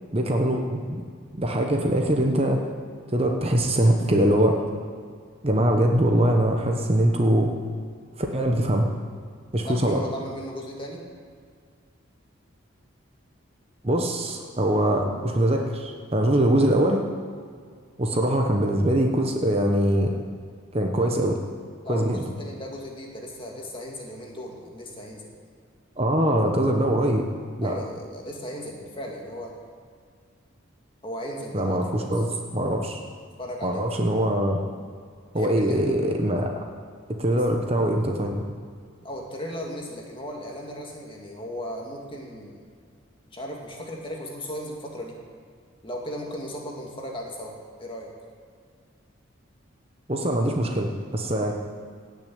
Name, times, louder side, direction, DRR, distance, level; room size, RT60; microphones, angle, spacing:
voice 1, 0.1-1.0 1.3-2.7 3.1-4.6 5.4-7.5 8.2-8.9 9.5-10.1 13.8-17.0 18.0-20.1 20.7-21.4 21.9-22.2 26.0-27.3 27.6-27.7 31.5-32.3 32.5-33.0 33.6-34.6 35.3-36.6 37.1-38.5 50.1-51.5, right 1 dB, 30° right, 2 dB, 1.0 m, -22 dB
voice 2, 9.6-11.0 21.8-25.3 27.6-29.5 31.0-32.1 33.4-34.0 35.3-36.0 39.0-42.6 43.3-45.1 45.8-48.1, equal, 25° left, -1 dB, 2.1 m, -36 dB
17.0 x 6.5 x 8.6 m, 2.1 s
head